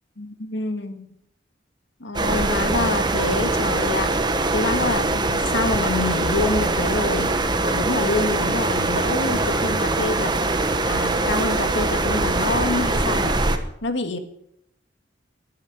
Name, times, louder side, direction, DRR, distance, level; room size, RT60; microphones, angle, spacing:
voice 1, 0.2-1.1 2.0-4.2 4.5-7.3 7.6-10.3 10.9-13.4 13.8-14.2, left 2 dB, 80° left, 9 dB, 1.8 m, -26 dB
sound 1, 2.1-13.6, right 2 dB, 25° right, 1.2 m, -22 dB
13.5 x 11.5 x 6.9 m, 0.73 s
head